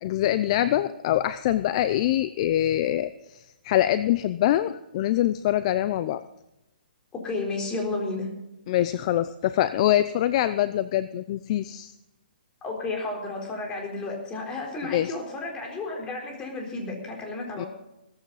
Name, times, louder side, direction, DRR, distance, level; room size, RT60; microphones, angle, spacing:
voice 1, 0.0-6.2 8.7-11.9 14.8-15.1 17.6-17.7, left 13 dB, 40° left, 14 dB, 0.6 m, -24 dB
voice 2, 7.1-8.3 12.6-17.7, left 3 dB, 15° left, 0 dB, 4.1 m, -32 dB
17.0 x 14.5 x 4.1 m, 0.92 s
hypercardioid pair, 150°, 5 cm